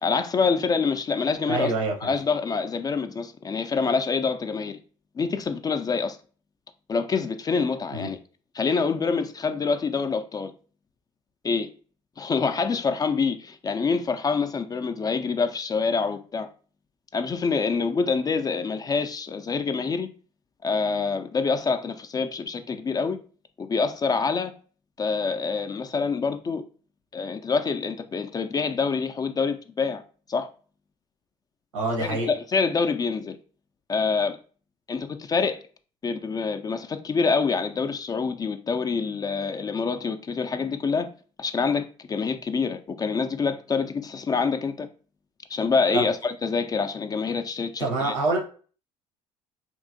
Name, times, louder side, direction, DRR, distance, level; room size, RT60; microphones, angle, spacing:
voice 1, 0.0-1.7 2.0-4.8 5.2-6.2 6.9-8.2 8.5-10.5 11.4-11.7 12.2-16.5 17.1-20.1 20.6-23.2 23.6-24.5 25.0-26.6 27.1-30.0 30.3-30.5 32.0-33.4 33.9-34.4 34.9-35.6 36.0-41.1 41.4-44.9 45.5-48.1, left 5 dB, 25° left, 0.3 m, -26 dB
voice 2, 1.5-1.9 7.9-8.1 31.7-32.3 45.9-46.0 47.8-48.4, right 3 dB, 80° right, 0.8 m, -25 dB
3.0 x 2.7 x 2.5 m
hypercardioid pair, 60°, 16 cm